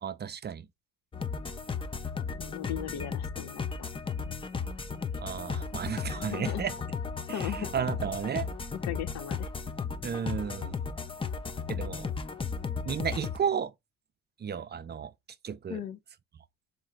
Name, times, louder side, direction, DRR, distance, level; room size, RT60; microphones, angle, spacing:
voice 1, 0.0-0.7 5.2-6.7 7.3-8.5 10.0-10.7 11.7-12.1 12.9-13.7 14.4-15.1 15.4-15.8, right 7 dB, 35° right, 0.5 m, -33 dB
sound 1, 1.1-13.4, left 5 dB, 20° left, 0.5 m, -35 dB
voice 2, 2.4-3.9 6.2-6.7 7.3-7.7 8.8-9.5 15.7-16.0, left 10 dB, 65° left, 0.7 m, -37 dB
3.7 x 2.6 x 4.3 m
cardioid pair, 90°, 30 cm